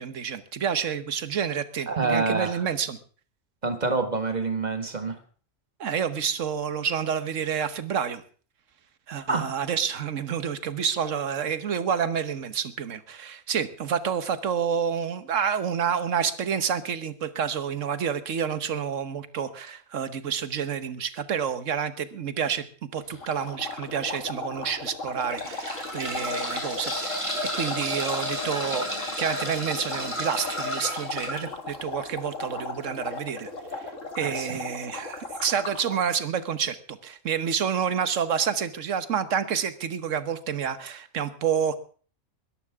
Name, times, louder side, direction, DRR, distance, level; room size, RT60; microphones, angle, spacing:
voice 1, 0.0-3.0 5.8-8.2 9.1-28.9 29.2-41.8, right 7 dB, 70° right, 12 dB, 1.5 m, -29 dB
voice 2, 1.9-2.6 3.6-5.2 9.3-9.5 34.2-34.6, right 3 dB, 35° right, 8 dB, 1.7 m, -27 dB
sound 1, 23.1-23.3 24.0-24.1 25.0-31.4 33.0-33.1 33.4-33.5, left 1 dB, 20° left, 4.8 m, -32 dB
sound 2, 23.2-36.0, left 3 dB, 70° left, 2.4 m, -37 dB
21.5 x 13.5 x 3.6 m, 0.42 s
omnidirectional pair, 1.4 m